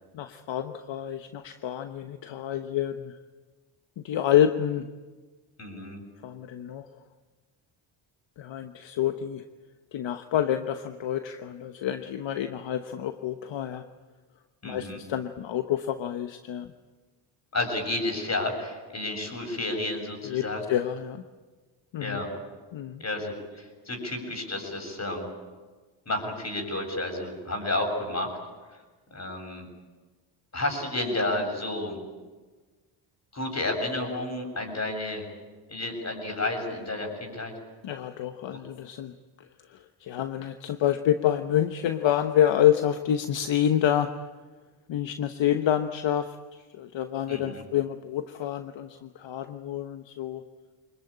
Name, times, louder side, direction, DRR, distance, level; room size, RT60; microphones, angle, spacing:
voice 1, 0.1-3.2 4.0-4.9 6.2-6.9 8.4-9.4 9.9-13.8 14.6-16.7 20.2-21.2 21.9-22.2 22.7-23.0 37.8-39.1 39.7-44.1 44.9-50.4, left 10 dB, 65° left, 8 dB, 1.2 m, -28 dB
voice 2, 5.6-6.0 14.6-15.0 17.5-20.7 22.0-22.3 23.0-25.3 26.1-28.4 29.1-29.7 30.5-32.0 33.3-35.2 35.7-37.5 47.3-47.6, left 2 dB, 30° left, 4 dB, 7.8 m, -31 dB
25.0 x 21.0 x 8.8 m, 1.3 s
cardioid pair, 75°, 48 cm